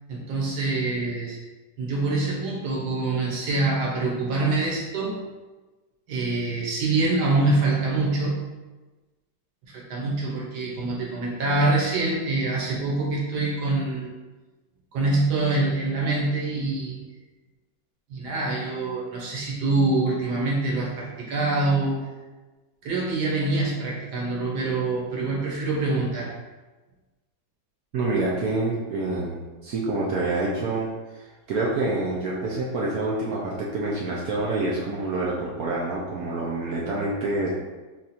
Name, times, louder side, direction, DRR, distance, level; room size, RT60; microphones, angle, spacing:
voice 1, 0.1-1.4 1.8-5.1 6.1-8.4 9.7-14.1 14.9-17.0 18.1-22.0 22.8-26.3, right 2 dB, 60° right, -4 dB, 1.3 m, -25 dB
voice 2, 27.9-37.5, right 2 dB, 75° right, -5 dB, 0.8 m, -27 dB
4.1 x 2.4 x 4.1 m, 1.2 s
omnidirectional pair, 2.2 m